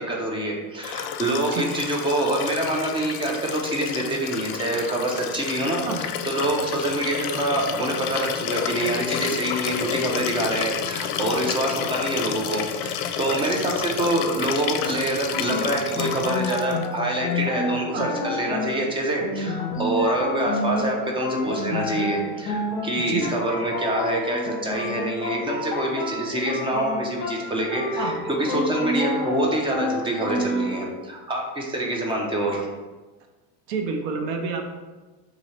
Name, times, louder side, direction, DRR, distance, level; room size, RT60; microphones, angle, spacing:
voice 1, 0.0-32.7, right 1 dB, 15° right, 0 dB, 0.5 m, -26 dB
Liquid, 0.8-16.9 18.2-18.3, left 8 dB, 75° left, 0.5 m, -30 dB
sound 1, 15.3-30.9, left 2 dB, 40° left, 0.8 m, -29 dB
voice 2, 33.7-34.7, right 4 dB, 75° right, 4 dB, 0.7 m, -28 dB
3.0 x 2.7 x 4.2 m, 1.2 s
cardioid pair, 145°, 38 cm